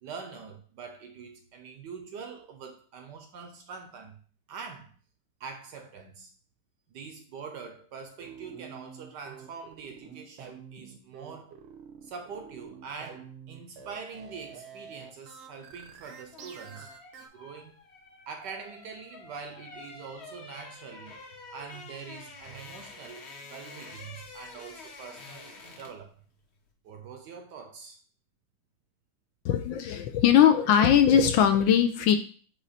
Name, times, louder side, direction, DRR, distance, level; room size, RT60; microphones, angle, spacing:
voice 1, 0.0-4.2 4.5-4.9 5.4-6.3 6.9-11.5 12.0-16.9 17.3-17.8 18.3-21.2 21.5-26.2 26.8-28.0, right 5 dB, 70° right, 1.1 m, -44 dB
sound 1, 8.2-17.3, right 7 dB, 85° right, 1.8 m, -47 dB
sound 2, 16.1-26.1 26.4-26.6, left 3 dB, 40° left, 1.0 m, -48 dB
voice 2, 29.4-32.2, left 9 dB, 75° left, 1.2 m, -20 dB
8.0 x 3.1 x 4.2 m
omnidirectional pair, 2.3 m